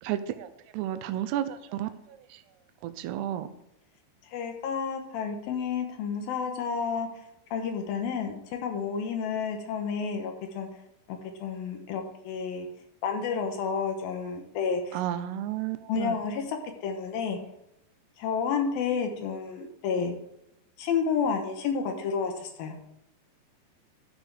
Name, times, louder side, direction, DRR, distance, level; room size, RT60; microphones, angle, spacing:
voice 1, 0.0-2.4 2.8-3.5 14.9-16.2, right 12 dB, 90° right, 10 dB, 2.3 m, -32 dB
voice 2, 4.3-7.1 7.5-10.7 11.4-12.7 13.0-15.0 15.9-17.4 18.2-20.1 20.8-22.8, left 6 dB, 75° left, 4 dB, 2.3 m, -30 dB
14.0 x 6.2 x 3.4 m, 0.83 s
omnidirectional pair, 5.6 m